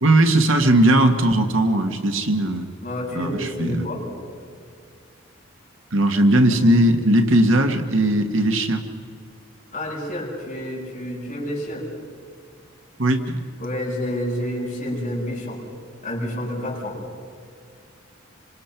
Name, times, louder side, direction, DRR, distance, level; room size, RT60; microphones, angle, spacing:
voice 1, 0.0-2.7 3.1-3.8 5.9-8.8 13.0-13.4, right 1 dB, 70° right, 6 dB, 1.7 m, -18 dB
voice 2, 2.8-4.1 9.7-11.9 13.6-15.6 16.0-17.0, left 1 dB, 35° left, -5 dB, 7.6 m, -29 dB
27.0 x 25.5 x 6.0 m, 2.2 s
head